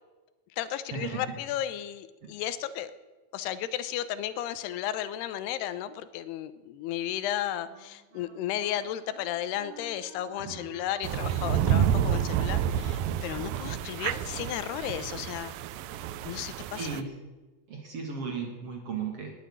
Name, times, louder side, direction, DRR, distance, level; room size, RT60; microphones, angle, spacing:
voice 1, 0.6-2.9 3.3-15.5 16.2-16.9, left 11 dB, 85° left, 14 dB, 2.8 m, -34 dB
Wind instrument woodwind instrument, 7.7-15.1, right 6 dB, 60° right, 4.2 m, -52 dB
sound 1, 11.0-17.0, right 9 dB, 80° right, 2.2 m, -29 dB
voice 2, 11.6-12.0 16.8-17.1 17.7-19.3, right 6 dB, 45° right, 2 dB, 2.3 m, -35 dB
18.5 x 7.2 x 8.5 m, 1.2 s
omnidirectional pair, 4.5 m